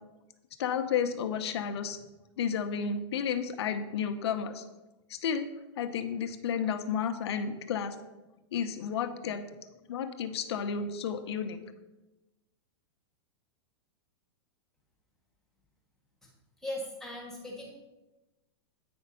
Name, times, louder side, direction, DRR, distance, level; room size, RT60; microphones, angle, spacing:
voice 1, 0.6-2.0 2.4-4.6 5.1-5.4 5.8-8.0 8.5-9.4 9.9-11.6, left 7 dB, 75° left, 7 dB, 0.9 m, -32 dB
voice 2, 16.6-17.7, left 1 dB, 5° left, -3 dB, 1.8 m, -38 dB
8.8 x 5.2 x 5.5 m, 1.0 s
supercardioid pair, 150°, 14 cm